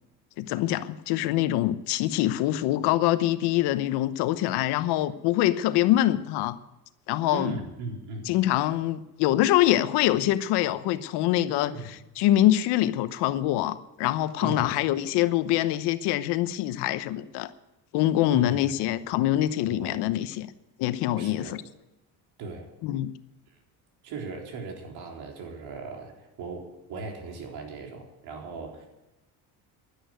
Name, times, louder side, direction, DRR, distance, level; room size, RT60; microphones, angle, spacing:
voice 1, 0.4-6.6 7.1-7.5 8.2-11.7 12.2-17.5 17.9-20.5 20.8-21.6 22.8-23.1, left 14 dB, 85° left, 1.0 m, -24 dB
voice 2, 7.3-8.3 11.6-11.9 14.4-14.7 18.3-18.7 19.6-20.1 21.1-21.6 22.4-22.7 24.0-28.9, right 3 dB, 75° right, 4.0 m, -38 dB
11.5 x 10.5 x 9.4 m
cardioid pair, 125°, 39 cm